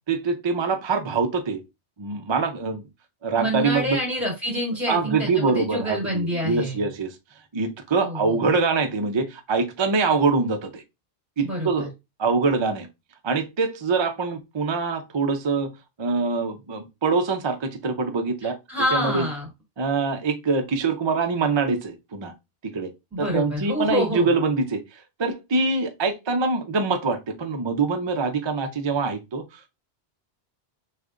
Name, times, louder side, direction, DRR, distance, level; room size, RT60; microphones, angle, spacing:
voice 1, 0.1-1.6 2.0-2.8 3.2-4.0 4.9-7.2 7.5-10.8 11.4-11.9 12.2-12.9 13.2-15.7 16.0-18.6 18.9-19.3 19.8-22.3 22.6-22.9 23.2-29.7, right 4 dB, 40° right, 0.4 m, -24 dB
voice 2, 3.4-6.8 8.0-8.4 11.4-11.9 18.4-19.5 23.1-24.3, equal, 15° right, 2.8 m, -27 dB
6.3 x 2.5 x 2.5 m
omnidirectional pair, 1.1 m